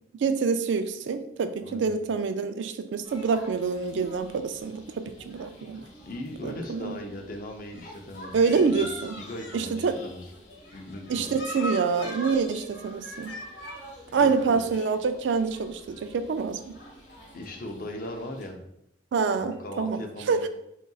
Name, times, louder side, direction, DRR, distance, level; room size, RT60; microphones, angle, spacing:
voice 1, 0.2-5.8 6.4-7.0 8.3-9.2 9.5-10.0 11.1-13.3 14.1-16.6 19.1-20.0 20.3-20.5, right 5 dB, 80° right, 10 dB, 0.3 m, -26 dB
sound 1, 3.0-18.5, left 1 dB, 70° left, 1.2 m, -44 dB
voice 2, 5.7-8.8 9.2-10.2 10.7-11.4 14.1-14.6 17.3-18.6 19.4-20.5, left 1 dB, 50° left, 2 dB, 0.6 m, -39 dB
4.1 x 3.8 x 2.3 m, 0.78 s
head